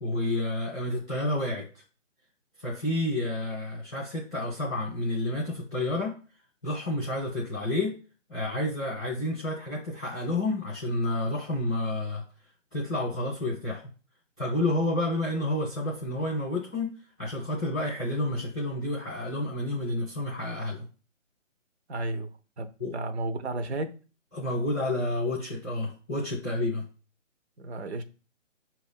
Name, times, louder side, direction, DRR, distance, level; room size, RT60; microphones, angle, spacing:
voice 1, 0.0-1.7 2.6-6.1 6.6-7.9 8.3-12.2 12.7-13.9 14.4-16.9 17.2-20.8 22.8-22.9 24.3-26.8, left 1 dB, 5° right, 0.5 m, -30 dB
voice 2, 21.9-22.3 22.6-22.7 22.9-23.9 27.6-28.0, right 2 dB, 55° right, 1.0 m, -32 dB
6.1 x 2.9 x 5.6 m
hypercardioid pair, 155°, 38 cm